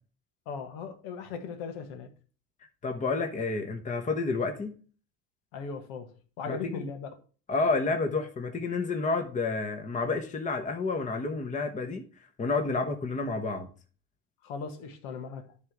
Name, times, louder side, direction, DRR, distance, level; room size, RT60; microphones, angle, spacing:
voice 1, 0.4-2.1 5.5-7.1 14.4-15.5, left 5 dB, 75° left, 1.7 m, -38 dB
voice 2, 2.8-4.7 6.5-6.9 7.5-12.0 12.4-13.7, left 3 dB, 20° left, 1.2 m, -30 dB
10.0 x 3.7 x 6.1 m
supercardioid pair, 120°, 33 cm